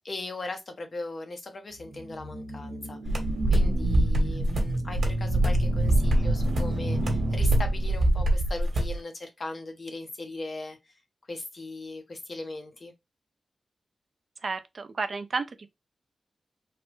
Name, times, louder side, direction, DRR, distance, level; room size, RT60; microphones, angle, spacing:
voice 1, 0.0-3.2 3.5-10.9 11.3-12.9, left 2 dB, 45° left, 0.8 m, -39 dB
sound 1, 1.8-8.1, right 1 dB, 85° right, 0.7 m, -31 dB
sound 2, 3.1-9.0, right 1 dB, 65° right, 1.0 m, -24 dB
voice 2, 14.4-15.7, right 4 dB, 50° right, 0.4 m, -32 dB
3.2 x 2.0 x 3.0 m
wide cardioid pair, 125°, 0 cm